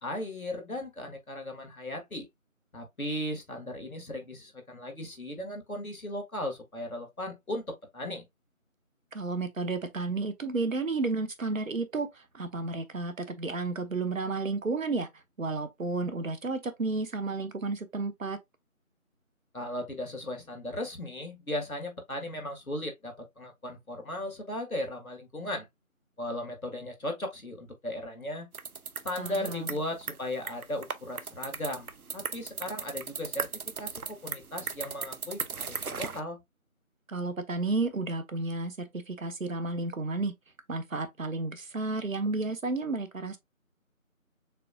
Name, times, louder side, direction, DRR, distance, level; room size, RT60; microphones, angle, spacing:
voice 1, 0.0-2.3 2.7-8.2 19.5-25.7 26.2-28.5 29.0-33.5 33.8-36.4, left 1 dB, 75° left, 1.8 m, -37 dB
voice 2, 9.1-15.1 15.4-18.4 29.2-29.7 37.1-40.3 40.7-43.4, right 3 dB, 65° right, 1.0 m, -32 dB
sound 1, 28.5-36.2, right 5 dB, 90° right, 0.7 m, -37 dB
6.6 x 2.7 x 2.3 m
figure-of-eight pair, 170°, 42 cm